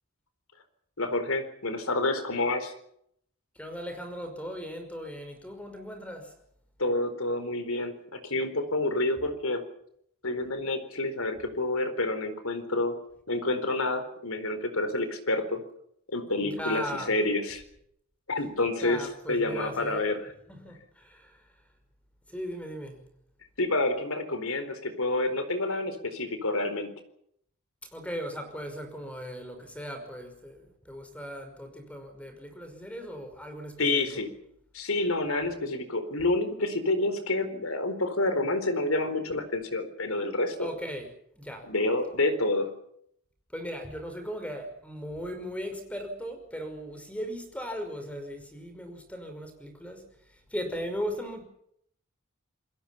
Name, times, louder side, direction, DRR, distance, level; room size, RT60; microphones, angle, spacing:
voice 1, 1.0-2.7 6.8-9.6 10.2-12.9 13.3-15.6 16.1-17.6 18.3-20.3 23.6-26.9 33.8-34.3 34.7-40.7 41.6-42.7, left 2 dB, 75° left, 10 dB, 4.3 m, -28 dB
voice 2, 3.6-6.3 16.4-17.2 18.8-20.0 20.5-21.4 22.3-23.1 27.9-34.1 40.6-41.7 43.5-50.0 50.5-51.4, equal, 5° left, 6 dB, 5.4 m, -38 dB
28.0 x 21.5 x 5.9 m, 0.70 s
head